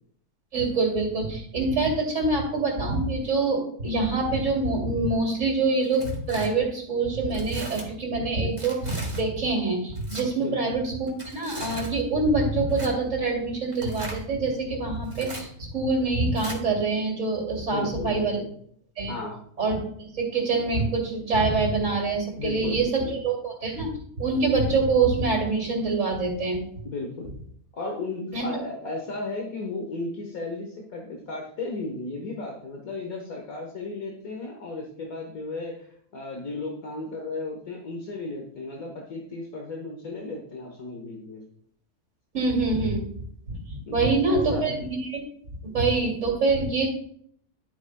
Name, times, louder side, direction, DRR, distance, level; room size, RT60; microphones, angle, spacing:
voice 1, 0.5-18.4 19.0-19.1 19.6-23.9 24.2-26.6 28.3-28.5 42.3-43.1 43.5-45.2 45.7-46.9, right 3 dB, 55° right, -3 dB, 2.6 m, -25 dB
Tearing, 5.8-6.5 7.3-7.9 8.6-9.2 9.9-10.2 11.1-12.0 12.7-12.9 13.7-14.2 15.0-15.4 16.4-16.6, right 1 dB, 20° right, 1.9 m, -38 dB
voice 2, 10.4-10.7 17.7-18.5 19.1-19.5 22.4-23.1 26.9-27.3 27.7-35.9 36.1-41.4 43.9-44.8, left 3 dB, 70° left, 0 dB, 1.8 m, -34 dB
11.5 x 9.6 x 2.2 m, 0.63 s
omnidirectional pair, 1.6 m